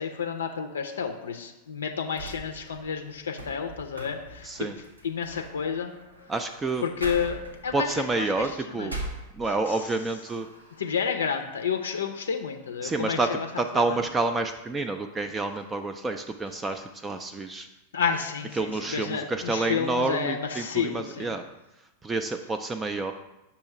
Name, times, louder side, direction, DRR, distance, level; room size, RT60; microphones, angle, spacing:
voice 1, 0.0-4.5 5.0-5.9 6.8-7.4 7.6-7.9 8.2-9.0 9.7-9.8 10.8-13.5 13.7-13.8 17.9-21.3, left 6 dB, 70° left, 5 dB, 0.4 m, -30 dB
sound 1, 2.2-9.9 10.3-11.1, right 1 dB, 80° right, 0.9 m, -42 dB
voice 2, 4.4-4.7 6.3-6.8 7.7-9.0 9.4-10.5 12.8-13.3 13.6-17.7 18.6-21.4 22.0-23.1, right 3 dB, 15° right, 6 dB, 0.3 m, -29 dB
6.1 x 2.9 x 5.7 m, 0.97 s
figure-of-eight pair, 90°, 0 cm